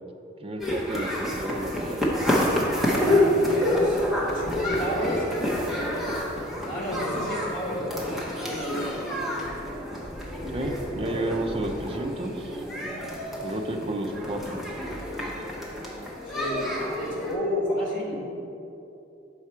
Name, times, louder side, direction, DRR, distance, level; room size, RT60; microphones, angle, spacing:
voice 1, 0.4-2.2 10.5-12.6 13.4-14.7, right 1 dB, 30° right, 4 dB, 0.4 m, -32 dB
sound 1, 0.6-17.3, left 1 dB, ahead, 0.8 m, -28 dB
voice 2, 3.0-6.1 6.6-9.0 10.7-10.8 11.1-11.2 16.3-18.2, left 1 dB, 45° left, -4 dB, 1.4 m, -31 dB
6.5 x 4.7 x 4.3 m, 2.9 s
head